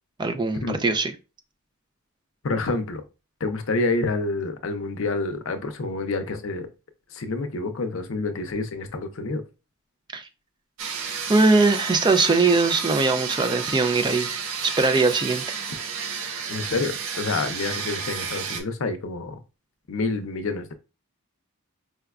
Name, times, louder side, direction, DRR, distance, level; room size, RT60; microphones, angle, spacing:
voice 1, 0.2-1.1 10.1-10.3 11.3-14.3 14.6-15.4, right 3 dB, 20° right, 0.3 m, -21 dB
voice 2, 2.4-3.0 3.4-6.7 7.1-9.4 16.5-19.4 19.9-20.7, left 3 dB, 60° left, 0.5 m, -28 dB
sound 1, 10.8-18.6, right 6 dB, 65° right, 0.6 m, -31 dB
4.7 x 2.2 x 2.3 m
head